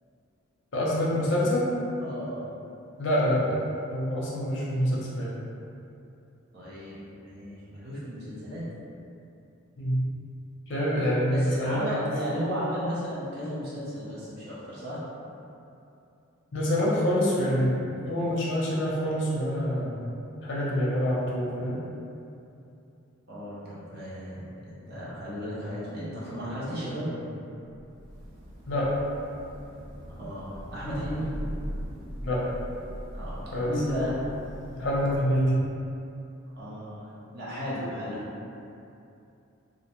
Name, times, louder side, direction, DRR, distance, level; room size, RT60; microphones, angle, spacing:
voice 1, 0.7-1.7 3.0-3.6 3.9-5.3 9.8-10.1 10.7-12.0 16.5-17.8 18.1-20.1 20.4-21.8 28.7-28.9 32.2-32.5 33.5-33.7 34.8-35.6, equal, 60° left, -6 dB, 0.6 m, -26 dB
voice 2, 2.0-2.4 6.5-8.7 11.3-15.0 23.3-27.4 30.1-31.4 33.1-34.3 36.6-38.2, equal, 50° right, -9 dB, 0.6 m, -34 dB
Thunder / Rain, 27.7-35.7, equal, 90° right, 0.6 m, -40 dB
2.5 x 2.0 x 2.9 m, 2.7 s
head